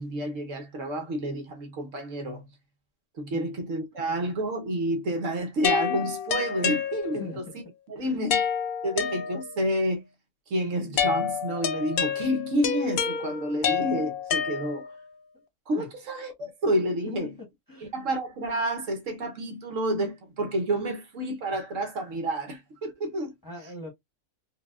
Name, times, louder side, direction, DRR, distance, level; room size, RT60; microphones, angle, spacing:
voice 1, 0.0-2.4 3.2-7.4 7.9-8.4 8.8-10.0 10.5-14.9 15.7-17.3 17.9-23.3, right 1 dB, 65° right, 1.2 m, -29 dB
sound 1, 5.6-7.4 8.3-9.7 11.0-15.1, left 7 dB, 60° left, 0.6 m, -28 dB
voice 2, 7.1-7.6 8.0-8.3 15.8-15.9 17.1-17.9 23.4-23.9, left 2 dB, 15° left, 0.9 m, -42 dB
4.5 x 2.2 x 2.3 m
omnidirectional pair, 1.5 m